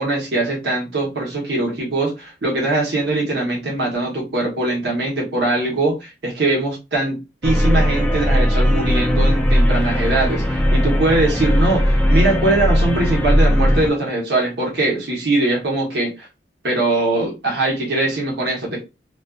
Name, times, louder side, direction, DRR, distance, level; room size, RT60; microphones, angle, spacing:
voice 1, 0.0-16.3 16.6-18.8, right 2 dB, 65° right, 0.9 m, -21 dB
sound 1, 7.4-13.9, equal, 10° left, 0.3 m, -17 dB
2.4 x 2.3 x 2.2 m
head